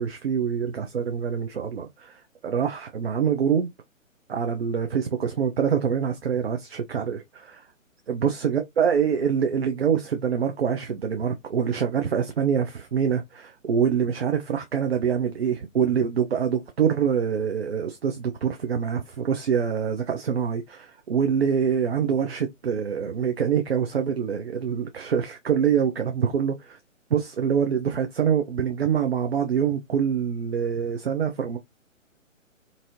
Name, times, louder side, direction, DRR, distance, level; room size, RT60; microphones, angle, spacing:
voice 1, 0.0-3.7 4.3-7.7 8.1-26.8 27.1-31.6, right 7 dB, 50° right, 0.5 m, -25 dB
3.0 x 2.6 x 2.5 m
figure-of-eight pair, 135°, 40 cm